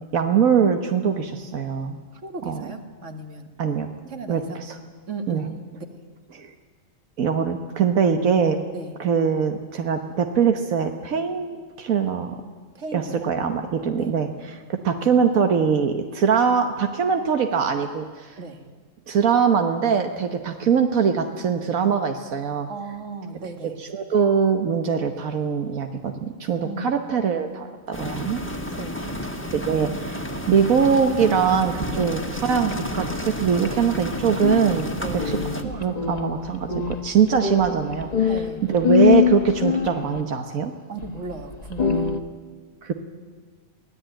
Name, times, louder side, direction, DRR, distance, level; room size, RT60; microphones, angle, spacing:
voice 1, 0.1-2.0 2.5-2.6 3.6-3.9 4.3-4.7 5.3-5.4 6.3-6.5 7.2-8.6 9.0-12.4 12.9-18.4 19.1-22.7 23.8-28.4 29.5-34.9 35.2-36.7 37.0-38.3 38.7-40.7 42.8-42.9, right 6 dB, 85° right, 6 dB, 1.6 m, -22 dB
voice 2, 2.2-3.5 4.1-4.6 5.1-5.9 8.7-9.0 12.8-13.3 14.0-14.1 18.4-18.7 22.7-23.8 26.6-26.9 28.8-29.0 31.9-32.2 34.9-36.0 38.3-38.6 40.9-42.1, right 3 dB, 60° right, 6 dB, 2.1 m, -36 dB
sound 1, 27.9-35.6, equal, 10° left, 1.6 m, -31 dB
sound 2, 34.3-40.2 41.0-41.1 41.5-42.2, left 7 dB, 30° left, 1.2 m, -23 dB
24.0 x 16.5 x 9.0 m, 1.5 s
omnidirectional pair, 1.4 m